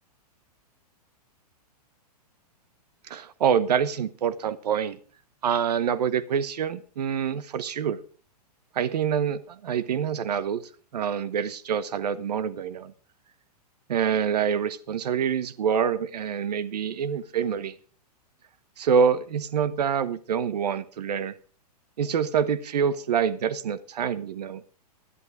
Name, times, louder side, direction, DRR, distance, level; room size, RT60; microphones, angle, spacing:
voice 1, 3.1-5.0 5.4-8.0 8.7-10.6 10.9-12.9 13.9-17.8 18.8-21.3 22.0-24.6, right 7 dB, 80° right, 17 dB, 0.9 m, -26 dB
11.0 x 11.0 x 4.7 m, 0.43 s
hypercardioid pair, 135°, 21 cm